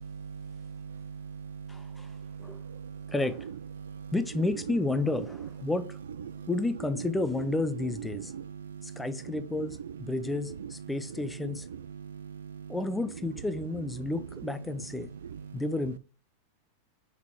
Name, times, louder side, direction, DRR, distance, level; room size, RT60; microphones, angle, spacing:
voice 1, 0.0-3.1 3.8-4.1 6.3-6.5 8.1-9.4 11.9-12.8 15.3-15.6, right 7 dB, 65° right, 0.3 m, -42 dB
voice 2, 1.7-2.1 2.4-2.6 3.1-3.5 4.1-6.0 6.5-8.3 9.0-11.7 12.7-15.1 15.5-16.0, left 2 dB, 5° left, 0.6 m, -31 dB
5.8 x 3.8 x 4.5 m
figure-of-eight pair, 90°, 0 cm